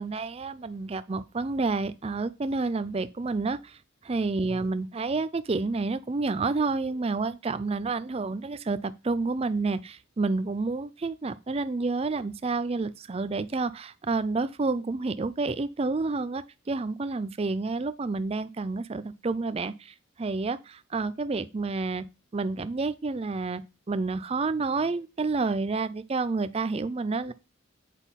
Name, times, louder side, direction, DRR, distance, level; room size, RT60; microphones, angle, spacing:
voice 1, 0.0-3.7 4.1-22.0 22.3-23.6 23.9-27.3, right 3 dB, 30° right, 0.4 m, -29 dB
8.1 x 5.6 x 4.1 m
head